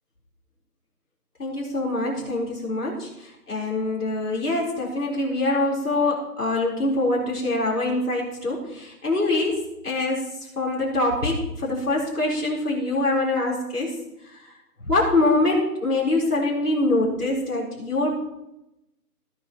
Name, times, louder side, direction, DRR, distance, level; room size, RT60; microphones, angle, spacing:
voice 1, 1.4-10.2 10.6-13.9 14.8-18.2, left 2 dB, 70° left, -4 dB, 4.4 m, -24 dB
18.0 x 9.4 x 3.1 m, 0.90 s
figure-of-eight pair, 170°, 48 cm